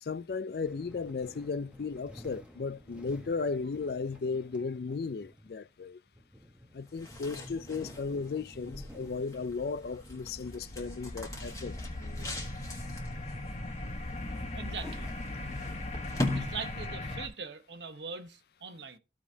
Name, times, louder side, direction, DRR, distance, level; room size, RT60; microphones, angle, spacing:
voice 1, 0.0-6.0 6.7-12.4, left 4 dB, 65° left, 0.4 m, -35 dB
sound 1, 0.6-9.7, equal, 5° right, 0.9 m, -53 dB
sound 2, 6.8-17.1, left 1 dB, 20° left, 1.6 m, -41 dB
sound 3, 9.5-17.3, left 2 dB, 35° left, 1.1 m, -39 dB
voice 2, 14.5-15.1 16.3-19.0, right 5 dB, 85° right, 1.1 m, -42 dB
14.5 x 5.0 x 2.8 m
head